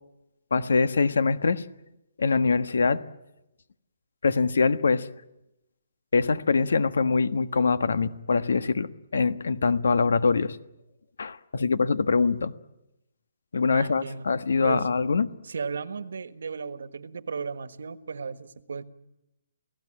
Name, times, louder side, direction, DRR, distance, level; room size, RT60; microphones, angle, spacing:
voice 1, 0.5-1.6 2.2-3.0 4.2-5.1 6.1-10.6 11.2-12.5 13.5-15.3, left 4 dB, 80° left, 12 dB, 1.4 m, -23 dB
voice 2, 13.7-14.3 14.6-14.9 15.4-18.8, right 5 dB, 70° right, 12 dB, 1.5 m, -35 dB
29.5 x 17.5 x 8.9 m, 0.91 s
hypercardioid pair, 175°, 0 cm